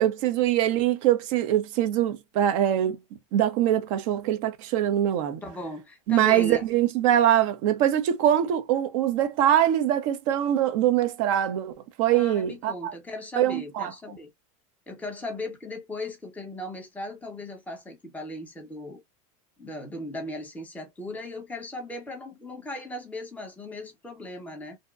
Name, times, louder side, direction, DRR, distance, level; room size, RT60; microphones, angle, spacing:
voice 1, 0.0-3.0 3.3-5.4 6.1-11.7 12.0-12.9 13.4-13.9, right 11 dB, 60° right, 0.7 m, -23 dB
voice 2, 5.4-6.6 12.1-14.3 14.9-19.0 19.6-24.8, left 1 dB, 10° left, 0.9 m, -37 dB
2.7 x 2.1 x 2.3 m
supercardioid pair, 130°, 19 cm